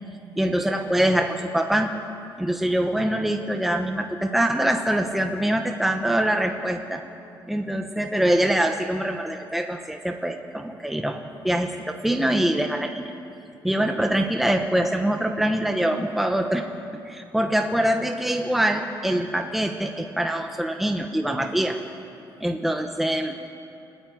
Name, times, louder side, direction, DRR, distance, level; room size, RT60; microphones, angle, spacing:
voice 1, 0.4-1.9 2.4-7.0 7.5-13.1 13.6-16.7 17.0-21.8 22.4-23.4, right 1 dB, ahead, 4 dB, 1.0 m, -24 dB
29.0 x 14.0 x 9.3 m, 2.7 s
cardioid pair, 155°, 9 cm